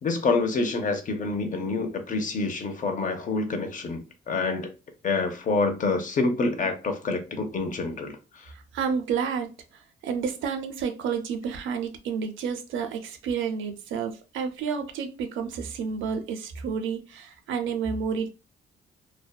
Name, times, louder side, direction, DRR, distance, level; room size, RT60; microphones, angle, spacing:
voice 1, 0.0-4.7 5.0-8.5, left 3 dB, 40° left, 0.6 m, -27 dB
voice 2, 8.5-18.3, right 6 dB, 80° right, 0.5 m, -30 dB
2.6 x 2.1 x 2.2 m
cardioid pair, 90°, 20 cm